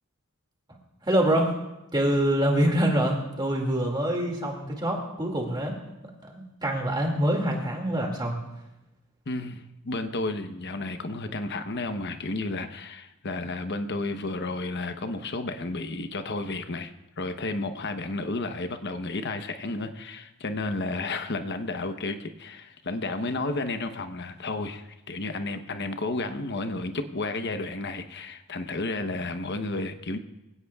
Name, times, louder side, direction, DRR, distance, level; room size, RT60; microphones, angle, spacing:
voice 1, 1.0-1.6 1.9-5.8 6.2-8.4, right 1 dB, 20° right, 0 dB, 2.3 m, -25 dB
voice 2, 9.3-16.9 17.2-30.2, left 2 dB, 50° left, 7 dB, 0.9 m, -32 dB
25.5 x 16.5 x 2.4 m, 0.96 s
head